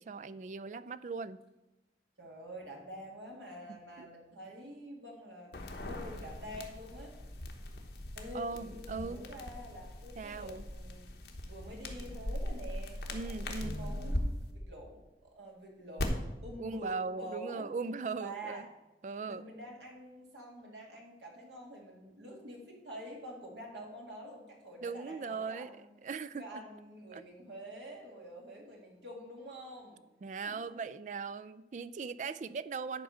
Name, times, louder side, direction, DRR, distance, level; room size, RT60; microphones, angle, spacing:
voice 1, 0.0-1.4 4.0-4.1 8.3-9.3 10.2-10.6 13.1-13.8 16.6-18.7 19.0-19.5 24.8-26.6 27.1-27.2 30.2-33.0, right 4 dB, 45° right, 15 dB, 0.3 m, -39 dB
voice 2, 2.2-7.1 8.2-11.0 11.4-16.2 16.4-17.7 18.2-18.7 19.3-25.9 26.4-30.0 30.4-30.8, right 1 dB, 85° right, -1 dB, 2.3 m, -47 dB
sound 1, 5.5-14.2 16.0-16.1, left 1 dB, 75° left, 1.2 m, -40 dB
10.5 x 4.5 x 6.6 m, 1.0 s
head